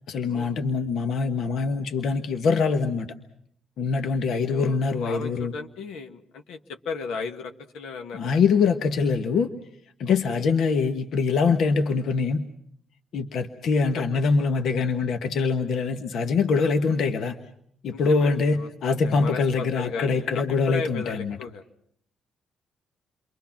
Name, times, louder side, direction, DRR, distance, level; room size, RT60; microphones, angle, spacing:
voice 1, 0.1-3.1 3.8-5.5 8.1-9.5 10.0-12.5 13.1-17.4 17.8-21.4, left 4 dB, 70° left, 6 dB, 1.3 m, -24 dB
voice 2, 4.0-8.4 10.1-10.5 13.9-14.2 17.9-21.6, left 5 dB, 90° left, 5 dB, 1.7 m, -36 dB
29.5 x 23.0 x 5.9 m, 0.70 s
cardioid pair, 90°, 0 cm